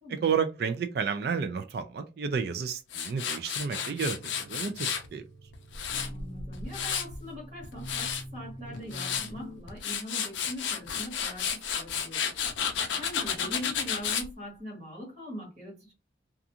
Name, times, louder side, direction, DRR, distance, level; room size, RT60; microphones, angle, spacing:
voice 1, 0.1-5.2, right 6 dB, 55° right, 0.3 m, -31 dB
Tools, 2.9-5.1 5.5-7.2 7.6-8.2 8.7-9.3 9.7-14.3, left 7 dB, 75° left, 0.4 m, -32 dB
sound 1, 3.7-9.6, equal, 10° left, 1.1 m, -45 dB
voice 2, 6.1-12.3 12.9-15.9, equal, 35° right, 1.3 m, -42 dB
2.4 x 2.4 x 2.7 m
head